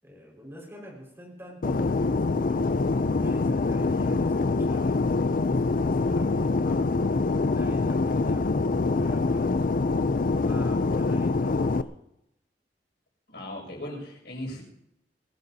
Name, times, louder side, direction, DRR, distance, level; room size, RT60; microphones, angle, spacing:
voice 1, 0.0-2.6 3.0-5.6 6.1-6.9 7.4-9.6 10.1-12.0, equal, 15° right, -1 dB, 5.1 m, -46 dB
Fixed-wing aircraft airplane, 1.6-11.8, left 3 dB, 50° left, 0.5 m, -25 dB
voice 2, 13.3-14.6, left 1 dB, 75° left, -1 dB, 6.7 m, -37 dB
22.5 x 16.0 x 2.8 m, 0.82 s
head